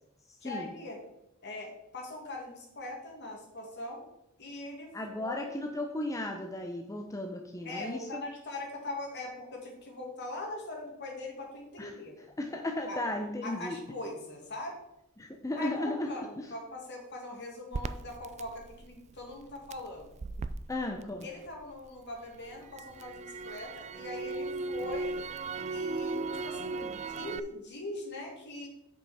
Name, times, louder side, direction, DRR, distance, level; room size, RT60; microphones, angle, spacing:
voice 1, 0.4-1.0 1.4-4.1 4.4-4.9 5.2-5.4 7.6-12.2 12.9-13.0 13.4-14.8 15.5-20.1 21.2-25.2 25.7-28.7, left 2 dB, 55° left, 0 dB, 2.2 m, -41 dB
voice 2, 4.9-8.2 11.8-13.8 15.2-16.1 20.7-21.3, left 1 dB, 15° left, 2 dB, 0.7 m, -35 dB
Crackle, 17.7-21.9 22.2-27.4, right 3 dB, 30° right, 0.3 m, -37 dB
8.1 x 5.5 x 4.9 m, 0.86 s
head